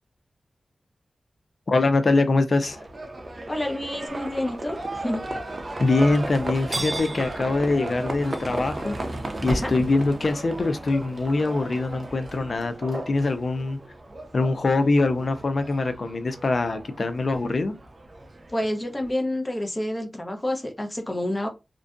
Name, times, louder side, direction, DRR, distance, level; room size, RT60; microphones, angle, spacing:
voice 1, 1.7-2.8 5.8-8.9 9.4-13.8 14.3-17.7, left 3 dB, 65° left, 0.4 m, -23 dB
Livestock farm animals working animals, 2.6-19.1, right 2 dB, 50° right, 0.4 m, -35 dB
voice 2, 3.5-5.2 9.5-9.7 18.5-21.5, left 1 dB, 25° left, 0.8 m, -28 dB
sound 1, 4.1-12.6, equal, 5° right, 0.9 m, -41 dB
2.5 x 2.2 x 2.4 m
cardioid pair, 45°, 0 cm